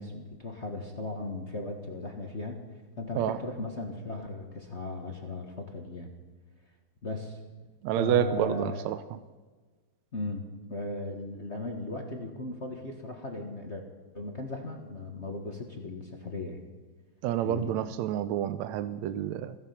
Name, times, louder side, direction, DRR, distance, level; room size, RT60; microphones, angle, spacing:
voice 1, 0.0-2.6 3.0-6.1 7.0-7.4 8.0-8.8 10.1-13.8 14.1-16.6 17.4-17.7, left 2 dB, 40° left, 3 dB, 1.0 m, -37 dB
voice 2, 7.8-9.0 17.2-19.6, right 11 dB, 75° right, 12 dB, 1.8 m, -28 dB
16.0 x 15.5 x 5.8 m, 1.3 s
omnidirectional pair, 3.5 m